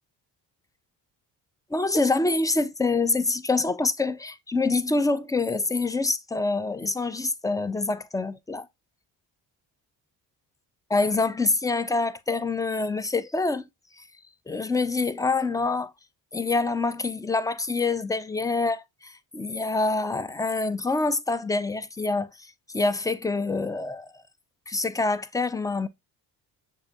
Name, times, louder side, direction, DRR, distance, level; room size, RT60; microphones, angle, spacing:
voice 1, 1.7-8.7 10.9-13.6 14.5-15.9 16.3-24.1 24.7-25.9, left 3 dB, 10° left, 0.4 m, -26 dB
6.8 x 2.7 x 2.5 m
supercardioid pair, 65°, 45 cm